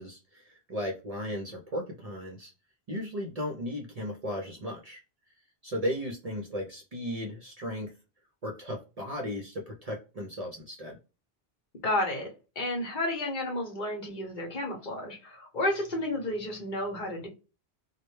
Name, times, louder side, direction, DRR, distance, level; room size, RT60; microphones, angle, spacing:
voice 1, 0.0-2.5 2.9-5.0 5.6-7.9 8.4-11.0, equal, 45° right, 0.5 m, -35 dB
voice 2, 11.8-12.3 12.6-17.3, left 1 dB, 50° left, 0.9 m, -31 dB
2.1 x 2.1 x 3.0 m
omnidirectional pair, 1.1 m